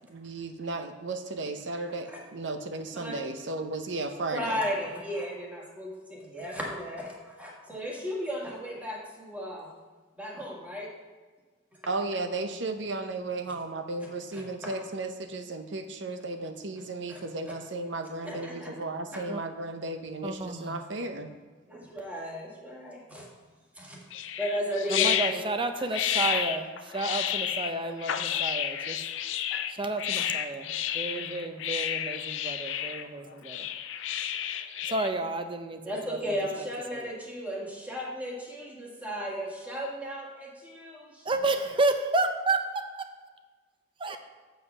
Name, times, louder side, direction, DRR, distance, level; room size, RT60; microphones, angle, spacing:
voice 1, 0.1-4.6 11.9-21.3, right 2 dB, 65° right, 7 dB, 0.8 m, -34 dB
voice 2, 4.3-9.7 10.1-10.9 14.3-14.7 17.1-17.2 18.2-18.7 21.7-23.3 23.7-24.1 24.4-25.4 35.8-41.3, equal, 10° right, -3 dB, 1.6 m, -35 dB
voice 3, 20.2-20.7 24.9-29.0 29.7-33.7 34.9-37.0 41.2-43.1 44.0-44.2, right 2 dB, 25° right, 7 dB, 0.6 m, -31 dB
sound 1, 24.1-35.1, left 10 dB, 80° left, 0.5 m, -31 dB
8.0 x 5.6 x 5.4 m, 1.4 s
head